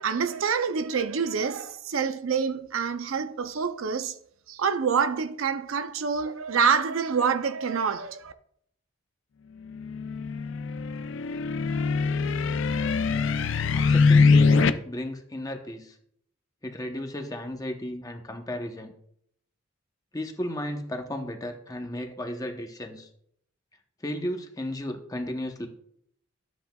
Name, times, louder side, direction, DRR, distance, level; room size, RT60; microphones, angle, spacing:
voice 1, 0.0-4.1 4.5-8.3, right 6 dB, 80° right, 0.5 m, -26 dB
sound 1, 9.7-14.7, left 4 dB, 65° left, 0.4 m, -22 dB
voice 2, 13.7-15.9 16.6-18.9 20.1-23.1 24.0-25.7, left 1 dB, 20° left, 0.9 m, -34 dB
12.5 x 8.1 x 2.3 m
head